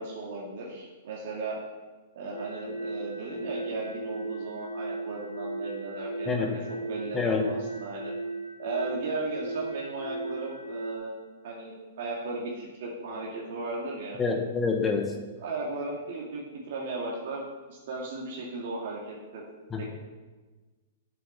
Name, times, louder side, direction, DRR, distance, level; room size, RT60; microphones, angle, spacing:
voice 1, 0.0-1.6 2.1-6.6 6.9-8.1 8.6-11.1 11.4-14.2 15.1-19.4 19.8-19.9, right 3 dB, 60° right, -3 dB, 2.2 m, -36 dB
sound 1, 2.3-10.9, right 2 dB, 85° left, 1.6 m, -37 dB
voice 2, 7.1-7.5 14.2-15.1 19.7-19.8, left 4 dB, 15° left, 3 dB, 1.6 m, -26 dB
8.1 x 7.6 x 7.1 m, 1.3 s
hypercardioid pair, 115°, 0 cm